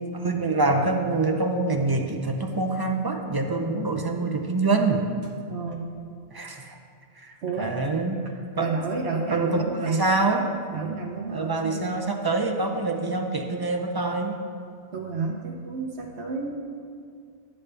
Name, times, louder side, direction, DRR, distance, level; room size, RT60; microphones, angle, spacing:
voice 1, 0.0-5.0 6.3-6.8 7.2-8.2 8.6-8.7 9.3-10.5 11.3-14.4, right 3 dB, 30° right, 3 dB, 0.4 m, -25 dB
voice 2, 5.5-5.9 7.4-7.8 8.6-10.1 10.7-12.0 14.9-16.6, right 4 dB, 65° right, -1 dB, 1.0 m, -30 dB
12.5 x 8.5 x 3.3 m, 2.3 s
omnidirectional pair, 1.2 m